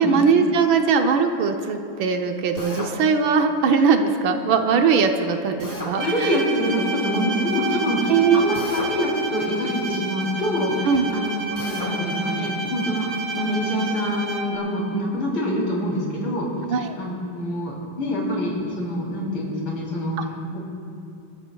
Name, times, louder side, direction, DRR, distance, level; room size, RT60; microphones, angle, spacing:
voice 1, 0.0-6.0 8.1-8.6 10.9-11.1 16.7-16.9, right 5 dB, 75° right, 6 dB, 1.5 m, -20 dB
Drill, 2.6-3.0 5.6-6.0 8.5-9.0 11.6-12.0, left 1 dB, 20° left, 1.5 m, -32 dB
voice 2, 6.0-16.5 16.8-20.6, equal, 70° left, -4 dB, 4.0 m, -26 dB
Bowed string instrument, 6.0-14.7, right 2 dB, 35° right, 1.3 m, -30 dB
27.5 x 13.0 x 2.3 m, 2.6 s
omnidirectional pair, 2.3 m